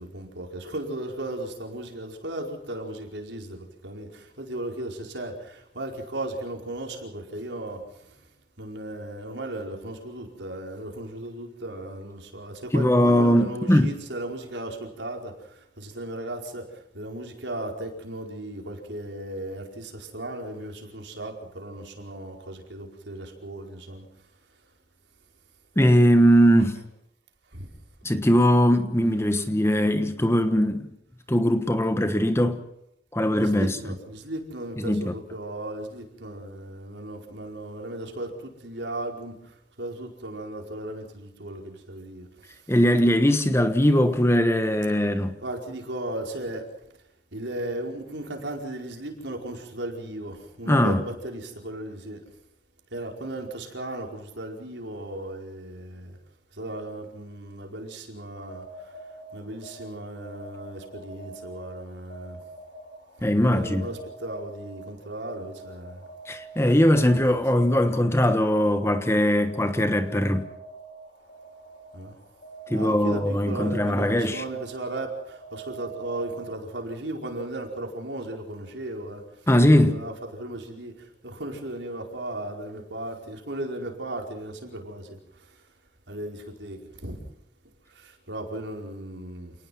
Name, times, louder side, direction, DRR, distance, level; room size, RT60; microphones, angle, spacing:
voice 1, 0.0-7.8 8.6-15.3 15.8-16.6 16.9-24.0 27.5-27.6 33.3-39.3 39.8-42.3 45.4-46.6 47.3-52.2 52.9-56.2 56.6-58.6 59.3-62.4 63.4-66.0 67.3-67.4 71.9-72.1 72.7-79.2 79.8-80.9 81.2-85.2 86.1-87.2 88.3-89.5, right 1 dB, 75° right, 4.8 m, -36 dB
voice 2, 12.7-13.9 25.8-26.8 28.0-30.9 31.3-32.6 33.1-33.8 34.8-35.1 42.7-45.4 50.7-51.0 63.2-63.9 66.3-70.5 72.7-74.4 79.5-80.0, equal, 15° left, 1.2 m, -20 dB
sound 1, 58.4-76.9, right 3 dB, 55° left, 6.4 m, -45 dB
28.5 x 19.5 x 5.9 m
head